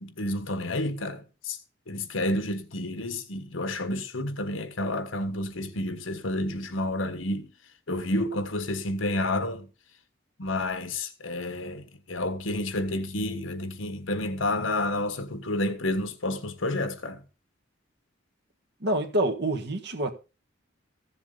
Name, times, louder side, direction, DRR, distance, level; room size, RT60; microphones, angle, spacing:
voice 1, 0.0-1.6 1.9-7.5 7.9-9.7 10.4-17.2, left 1 dB, 85° left, 1.4 m, -30 dB
voice 2, 18.8-20.1, right 1 dB, 60° right, 1.7 m, -27 dB
15.0 x 7.4 x 3.9 m
head